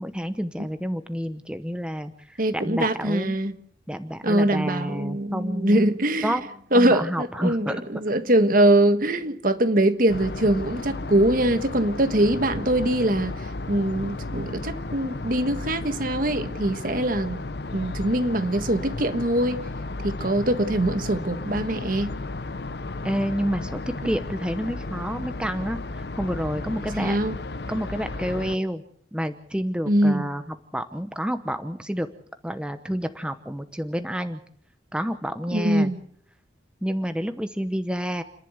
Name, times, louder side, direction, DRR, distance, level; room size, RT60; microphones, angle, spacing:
voice 1, 0.0-3.4 3.9-6.4 6.7-7.8 23.0-27.2 27.7-28.8 29.1-32.1 32.4-34.4 34.9-35.9 36.8-38.2, equal, 5° right, 0.9 m, -29 dB
voice 2, 2.4-3.5 4.2-6.4 6.7-17.4 17.7-19.6 20.0-22.1 26.9-27.3 29.9-30.3 35.5-36.0, right 1 dB, 50° right, 1.5 m, -23 dB
sound 1, 10.1-28.6, left 2 dB, 60° left, 0.8 m, -34 dB
30.0 x 11.0 x 8.0 m
head